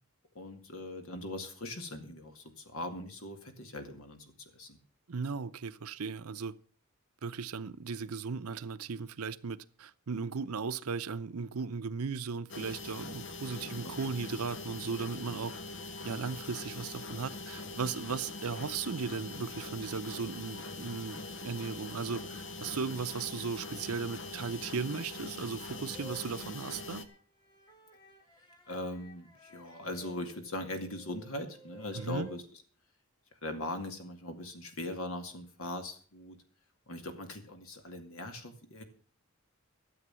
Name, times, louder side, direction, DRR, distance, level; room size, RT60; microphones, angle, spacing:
voice 1, 0.3-4.3 4.5-4.8 13.5-13.9 28.7-32.4 33.3-36.4 36.9-38.8, left 1 dB, 70° left, 2.2 m, -40 dB
voice 2, 5.1-6.5 7.2-15.5 16.0-27.1 31.9-32.3, right 5 dB, 85° right, 0.7 m, -37 dB
sound 1, 12.5-27.0, left 3 dB, 55° left, 1.2 m, -43 dB
sound 2, 25.4-32.4, equal, 20° left, 1.8 m, -55 dB
13.0 x 7.9 x 7.5 m
head